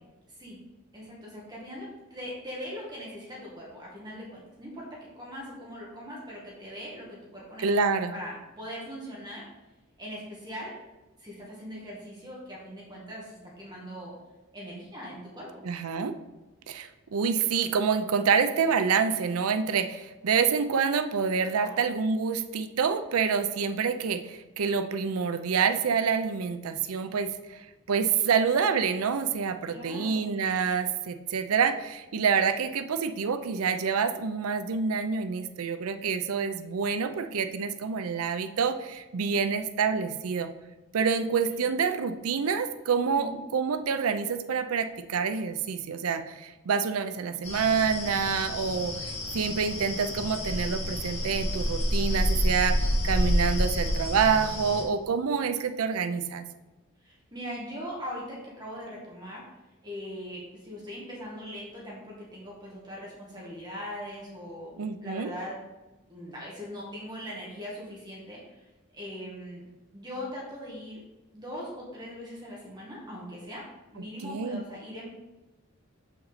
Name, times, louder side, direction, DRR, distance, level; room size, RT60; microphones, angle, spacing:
voice 1, 0.3-0.6 0.9-7.7 8.1-9.5 10.0-10.8 11.2-14.1 14.5-15.6 21.5-21.8 29.7-30.3 41.4-41.7 43.2-43.4 57.0-59.4 59.8-64.7 65.0-65.6 66.1-68.7 68.9-69.6 69.9-71.0 71.3-73.6 73.9-75.1, equal, 20° right, -5 dB, 1.9 m, -40 dB
voice 2, 7.6-8.1 15.6-16.1 16.7-40.5 40.9-52.8 53.0-56.4 64.8-65.3 74.2-74.6, right 6 dB, 90° right, 9 dB, 0.5 m, -27 dB
sound 1, 47.4-54.8, equal, 30° left, 1.7 m, -29 dB
7.2 x 5.8 x 4.1 m, 1.1 s
head